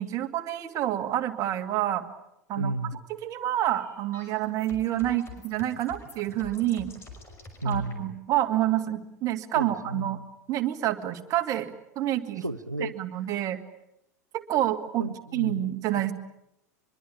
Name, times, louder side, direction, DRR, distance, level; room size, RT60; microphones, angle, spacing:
voice 1, 0.0-2.0 2.5-2.7 3.2-6.9 7.6-10.2 10.5-12.4 13.0-13.6 14.3-15.0 15.3-16.1, right 13 dB, 40° right, 6 dB, 2.3 m, -28 dB
voice 2, 2.5-3.0 7.6-8.1 9.5-10.2 12.4-12.9 15.0-16.1, right 2 dB, 90° right, 10 dB, 1.0 m, -33 dB
sound 1, 3.6-8.0, left 4 dB, 25° left, 5.8 m, -47 dB
24.0 x 23.5 x 8.7 m, 0.82 s
figure-of-eight pair, 85°, 9 cm